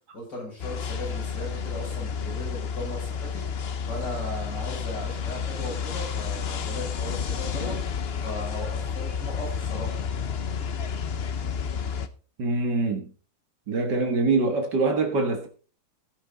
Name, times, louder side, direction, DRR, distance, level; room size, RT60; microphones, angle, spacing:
voice 1, 0.1-3.4 3.9-7.8 8.2-9.9, left 1 dB, 85° left, 6.8 m, -37 dB
sound 1, 0.6-12.1, left 6 dB, 50° left, 0.8 m, -31 dB
voice 2, 12.4-13.1 13.7-15.5, right 3 dB, 75° right, 2.3 m, -24 dB
17.5 x 6.1 x 4.0 m
omnidirectional pair, 1.8 m